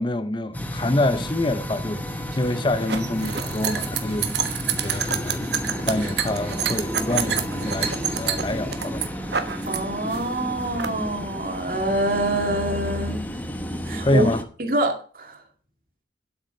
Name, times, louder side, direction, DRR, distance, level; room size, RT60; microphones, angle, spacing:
voice 1, 0.0-2.0 2.4-5.5 5.9-9.0 14.0-14.4, left 1 dB, 25° left, 0.6 m, -26 dB
sound 1, 0.5-14.4, equal, 10° left, 0.9 m, -31 dB
sound 2, 2.1-9.8 10.1-10.9, right 8 dB, 75° right, 1.2 m, -28 dB
voice 2, 9.7-13.3 13.9-14.3 14.6-15.4, right 1 dB, 50° right, 2.2 m, -26 dB
9.4 x 8.3 x 5.3 m
head